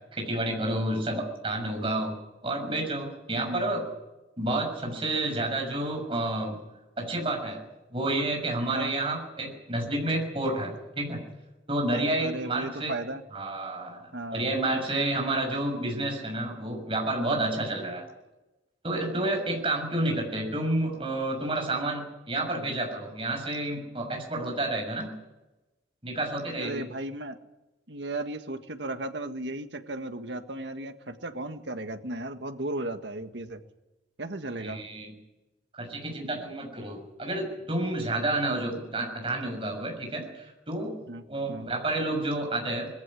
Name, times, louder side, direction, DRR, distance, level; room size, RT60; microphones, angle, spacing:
voice 1, 0.1-2.1 2.4-3.8 4.4-6.6 7.0-7.6 7.9-11.2 11.7-12.9 13.3-18.0 18.8-25.1 26.0-26.8 34.6-35.1 35.7-40.9 41.3-42.9, right 2 dB, 30° right, 2 dB, 6.4 m, -30 dB
voice 2, 3.3-3.8 8.7-8.9 11.9-13.2 14.1-14.5 26.6-27.4 27.9-33.6 34.2-34.9 41.1-41.7, right 2 dB, 80° right, 7 dB, 1.7 m, -35 dB
21.5 x 15.0 x 9.8 m, 1.0 s
head